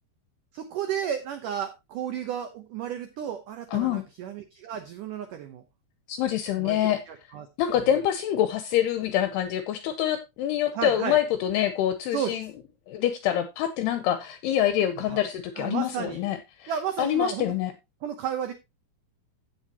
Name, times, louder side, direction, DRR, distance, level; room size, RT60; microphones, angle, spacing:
voice 1, 0.5-5.6 6.6-7.5 7.8-7.9 10.7-11.2 12.1-12.4 14.9-15.2 15.6-16.2 16.7-17.5 18.0-18.5, right 9 dB, 80° right, 1.8 m, -33 dB
voice 2, 3.7-4.0 6.1-7.0 7.6-12.5 12.9-16.7 17.0-17.7, left 11 dB, 75° left, 2.6 m, -26 dB
16.0 x 6.5 x 2.8 m
omnidirectional pair, 5.1 m